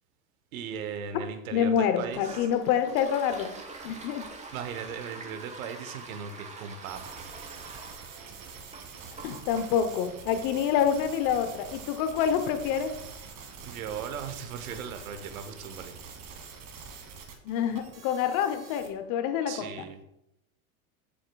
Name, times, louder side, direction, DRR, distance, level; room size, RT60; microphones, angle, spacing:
voice 1, 0.5-2.5 4.5-7.2 13.6-16.0 19.5-20.0, right 7 dB, 75° right, 9 dB, 1.0 m, -38 dB
voice 2, 1.5-3.5 3.8-4.3 9.2-12.9 17.4-19.9, left 8 dB, 50° left, 9 dB, 0.8 m, -27 dB
Toilet flush, 2.0-15.4, right 3 dB, 15° right, 1.1 m, -47 dB
sound 1, 6.8-19.0, right 5 dB, 45° right, 1.5 m, -45 dB
7.9 x 6.3 x 2.3 m, 0.83 s
hypercardioid pair, 105°, 42 cm